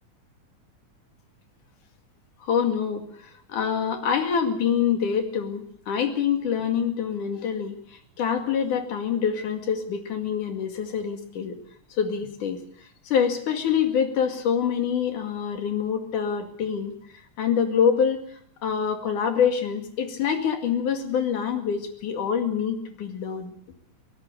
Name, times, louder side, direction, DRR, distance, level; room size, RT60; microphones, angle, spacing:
voice 1, 2.4-11.6 11.9-12.6 13.1-16.9 17.4-18.2 18.6-23.5, left 7 dB, 85° left, 6 dB, 3.7 m, -25 dB
24.0 x 17.5 x 6.7 m, 0.63 s
omnidirectional pair, 3.5 m